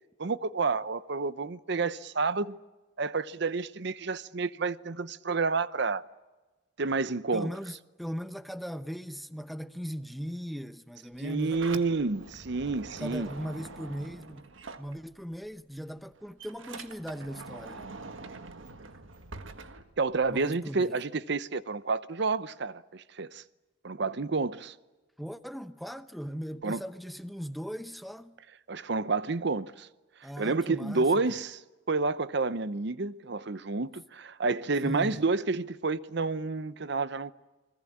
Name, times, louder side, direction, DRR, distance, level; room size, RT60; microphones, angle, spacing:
voice 1, 0.2-2.6 3.0-6.0 6.8-7.5 11.2-13.3 20.0-23.4 23.8-24.7 26.6-26.8 28.7-29.9 30.4-31.6 31.9-37.3, right 3 dB, 60° right, 0.8 m, -29 dB
voice 2, 7.3-11.9 13.0-14.5 14.8-17.9 20.2-21.0 25.2-28.4 30.2-31.4 34.8-35.2, equal, ahead, 0.8 m, -39 dB
Sliding door, 11.3-15.5 15.8-20.5, right 3 dB, 85° right, 1.5 m, -45 dB
29.5 x 21.0 x 8.6 m
head